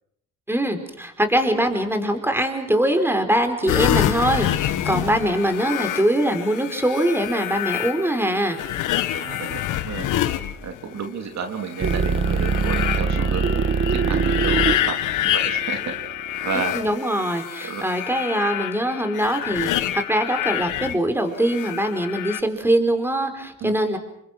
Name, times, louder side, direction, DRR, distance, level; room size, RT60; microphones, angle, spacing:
voice 1, 0.5-8.6 16.7-24.0, right 1 dB, 5° right, 7 dB, 4.7 m, -22 dB
sound 1, 3.7-11.1 11.6-21.0 21.4-22.4, left 13 dB, 85° left, 1.5 m, -27 dB
voice 2, 9.1-10.1 10.6-13.6 13.9-14.9 15.2-15.9 16.4-16.7 17.6-17.8 23.6-23.7, right 6 dB, 65° right, 5 dB, 3.1 m, -31 dB
sound 2, 11.8-16.9, right 5 dB, 40° right, 1.7 m, -23 dB
29.0 x 24.5 x 6.2 m, 0.74 s
cardioid pair, 90°, 30 cm